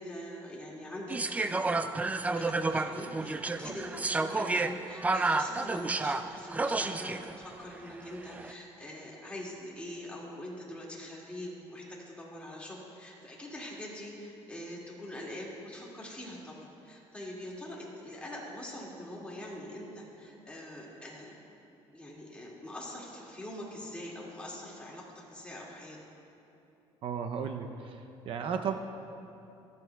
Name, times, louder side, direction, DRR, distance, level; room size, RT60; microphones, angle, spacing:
voice 1, 0.0-1.9 2.3-21.4 21.9-26.0, left 1 dB, 10° left, -4 dB, 2.1 m, -43 dB
sound 1, 1.1-7.3 8.2-8.5, right 3 dB, 15° right, 0.3 m, -31 dB
voice 2, 27.0-28.8, right 7 dB, 55° right, 5 dB, 0.6 m, -35 dB
25.5 x 8.6 x 2.3 m, 2.8 s
cardioid pair, 130°, 11 cm